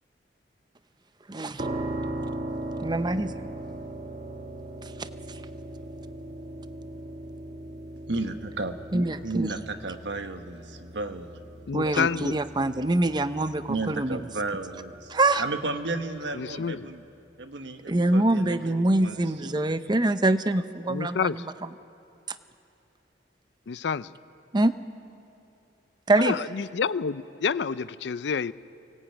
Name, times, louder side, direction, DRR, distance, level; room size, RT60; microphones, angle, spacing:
voice 1, 1.3-1.7 2.8-3.3 5.0-5.1 8.9-9.5 11.7-14.2 15.1-15.4 17.9-21.4 22.3-22.4 24.5-24.7 26.1-26.4, right 2 dB, 25° right, 11 dB, 0.7 m, -24 dB
sound 1, 1.6-16.4, right 1 dB, 40° right, 1.1 m, -39 dB
voice 2, 8.1-11.3 11.8-12.2 13.7-17.0 17.4-19.6, right 3 dB, 80° right, 7 dB, 1.3 m, -34 dB
voice 3, 11.7-12.4 16.3-16.9 20.9-21.4 23.7-24.1 26.2-28.5, left 6 dB, 70° left, 17 dB, 0.5 m, -28 dB
23.5 x 18.0 x 9.0 m, 2.7 s
head